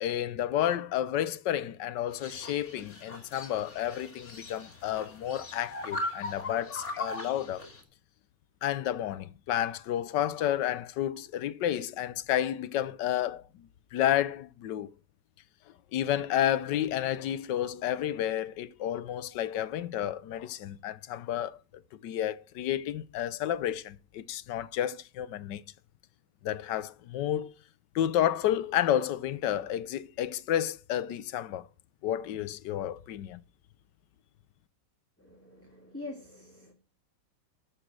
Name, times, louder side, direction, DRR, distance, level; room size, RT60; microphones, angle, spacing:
voice 1, 0.0-7.6 8.6-14.9 15.9-21.6 22.0-25.6 26.4-27.5 27.9-31.7 32.0-33.4, left 11 dB, 80° left, 1.4 m, -31 dB
sound 1, 2.1-7.8, left 2 dB, 40° left, 2.7 m, -39 dB
voice 2, 35.2-36.7, left 2 dB, 10° left, 2.3 m, -45 dB
13.0 x 6.4 x 6.1 m
omnidirectional pair, 1.9 m